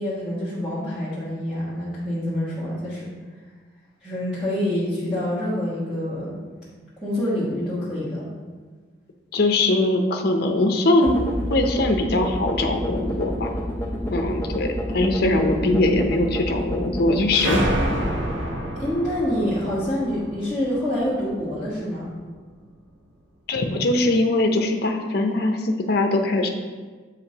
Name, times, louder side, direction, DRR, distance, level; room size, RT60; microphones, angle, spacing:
voice 1, 0.0-3.1 4.0-6.4 7.0-8.3 14.9-15.1 18.7-22.2, left 1 dB, 5° right, -12 dB, 1.4 m, -26 dB
voice 2, 9.3-11.2 11.5-13.5 14.1-14.7 14.9-17.6 23.5-26.5, left 2 dB, 55° left, 4 dB, 0.6 m, -21 dB
sound 1, 11.0-19.2, equal, 15° left, 0.5 m, -29 dB
sound 2, 17.3-21.8, right 1 dB, 75° right, 0.9 m, -28 dB
8.0 x 4.9 x 2.8 m, 1.4 s
head